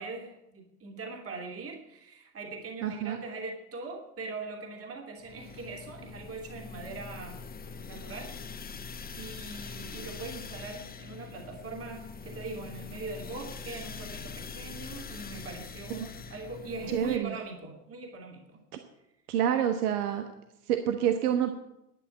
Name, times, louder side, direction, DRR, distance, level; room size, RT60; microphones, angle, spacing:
voice 1, 0.0-7.4 7.9-8.4 9.1-18.6, right 3 dB, 30° right, 2 dB, 2.8 m, -41 dB
voice 2, 2.8-3.2 15.9-16.1 16.9-17.3 19.3-20.2 20.7-21.6, right 9 dB, 65° right, 6 dB, 1.4 m, -27 dB
sound 1, 5.2-17.2, left 5 dB, 20° left, 1.2 m, -43 dB
11.5 x 8.9 x 8.7 m, 0.88 s
hypercardioid pair, 90°, 48 cm